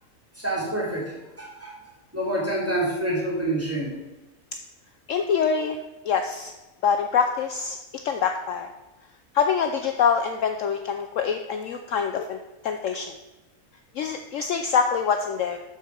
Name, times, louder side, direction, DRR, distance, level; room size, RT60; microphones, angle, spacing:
voice 1, 0.3-1.8 2.1-4.0, right 1 dB, 10° right, -5 dB, 2.8 m, -27 dB
voice 2, 5.1-5.8 6.0-6.5 6.8-7.8 8.0-8.7 9.3-12.4 12.6-13.1 14.0-15.6, left 6 dB, 70° left, 6 dB, 0.9 m, -25 dB
12.0 x 4.8 x 4.5 m, 1.0 s
omnidirectional pair, 1.6 m